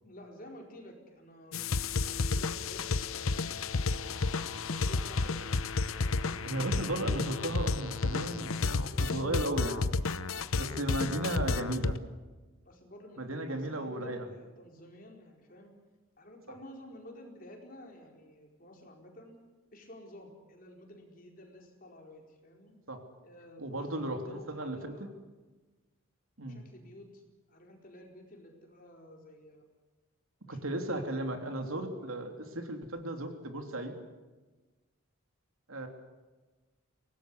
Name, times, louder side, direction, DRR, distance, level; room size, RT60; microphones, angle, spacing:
voice 1, 0.0-3.5 3.8-5.5 5.8-6.4 12.6-15.7 16.2-19.4 19.7-22.7 23.2-25.1 26.5-27.2 27.5-29.7 30.4-31.5 31.9-32.3, left 1 dB, 40° left, 1 dB, 4.5 m, -52 dB
sound 1, 1.5-12.0, left 3 dB, 75° left, 0.9 m, -31 dB
voice 2, 6.4-9.9 10.6-12.0 13.2-14.3 22.9-23.0 23.6-25.1 26.4-26.6 30.5-33.9 35.7-35.9, right 1 dB, 80° right, 5 dB, 3.2 m, -35 dB
23.5 x 18.5 x 8.1 m, 1.2 s
head